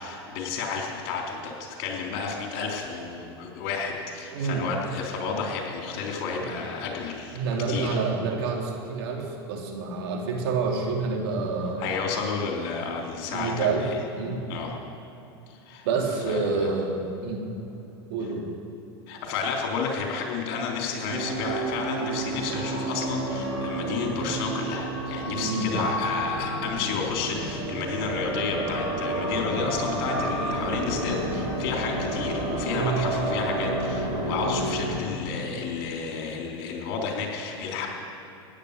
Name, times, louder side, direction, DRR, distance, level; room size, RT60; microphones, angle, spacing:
voice 1, 0.0-1.5 1.8-7.4 7.7-8.0 11.8-14.0 14.5-14.7 15.7-15.9 16.3-16.7 19.1-37.9, left 5 dB, 60° left, 0 dB, 3.6 m, -31 dB
voice 2, 4.3-4.7 6.4-6.5 7.3-12.1 13.3-13.9 14.2-14.4 15.8-17.5 18.1-18.5 25.3-25.7 32.7-33.1, right 4 dB, 65° right, 1 dB, 2.8 m, -28 dB
sound 1, 21.1-35.0, right 2 dB, 50° right, 3.7 m, -30 dB
16.5 x 9.7 x 6.7 m, 2.9 s
hypercardioid pair, 100°, 14 cm